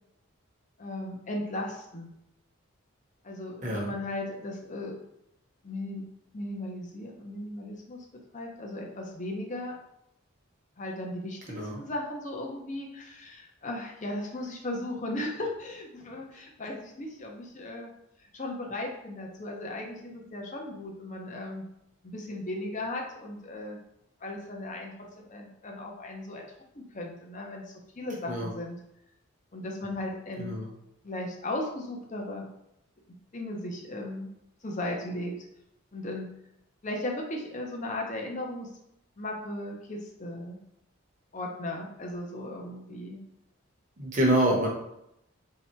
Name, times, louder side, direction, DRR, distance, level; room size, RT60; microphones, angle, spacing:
voice 1, 0.8-2.1 3.2-5.0 5.6-6.0 6.3-8.0 8.3-9.8 10.8-11.4 11.8-17.9 18.3-21.6 22.0-23.8 24.2-26.4 26.7-28.8 29.5-30.6 31.0-32.5 33.3-34.3 34.6-35.3 35.9-36.3 36.8-38.7 39.2-40.6 41.3-43.2, left 1 dB, 35° left, 0 dB, 0.7 m, -36 dB
voice 2, 3.6-3.9 11.5-11.8 28.3-28.5 30.4-30.7 44.0-44.7, right 1 dB, 35° right, -2 dB, 0.9 m, -26 dB
3.4 x 2.8 x 4.4 m, 0.82 s
head